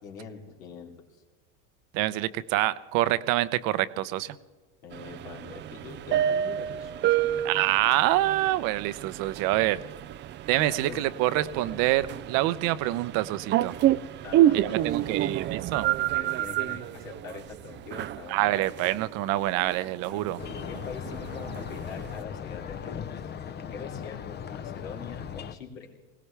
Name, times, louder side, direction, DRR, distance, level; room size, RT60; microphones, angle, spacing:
voice 1, 0.0-0.9 4.8-6.9 7.2-7.4 10.5-11.0 11.5-11.8 14.2-15.4 16.0-18.7 20.1-20.2 20.7-23.1 23.6-25.9, left 6 dB, 75° left, 0 dB, 3.3 m, -43 dB
voice 2, 1.9-4.4 7.4-9.8 10.5-13.7 14.5-15.9 18.3-20.4, right 16 dB, 55° right, 15 dB, 0.8 m, -26 dB
sound 1, 4.9-22.2, right 12 dB, 30° right, 0.4 m, -29 dB
sound 2, 20.4-25.6, left 8 dB, 25° left, 0.7 m, -38 dB
20.5 x 17.5 x 3.4 m, 1.3 s
hypercardioid pair, 100°, 39 cm